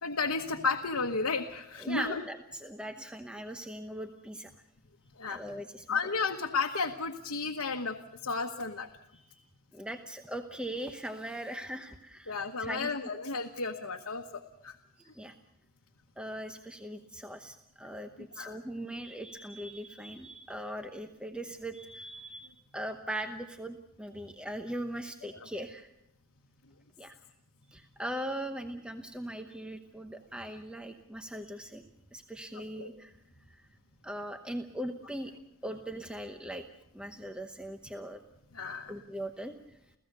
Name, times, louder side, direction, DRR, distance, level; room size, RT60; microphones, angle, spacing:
voice 1, 0.0-2.2 5.2-5.4 5.9-8.9 12.3-14.8 18.4-18.6 25.3-25.5 32.5-32.9 38.5-38.9, left 4 dB, 75° left, 3 dB, 1.2 m, -33 dB
voice 2, 1.8-4.5 5.3-6.0 9.1-9.4 9.7-12.9 15.0-15.3 16.2-25.9 27.0-27.2 27.7-31.8 32.1-33.1 33.5-33.7 34.0-35.3 35.6-36.6 36.9-38.2 38.9-39.6, right 1 dB, 5° right, 6 dB, 0.9 m, -40 dB
29.5 x 15.5 x 6.8 m, 0.84 s
head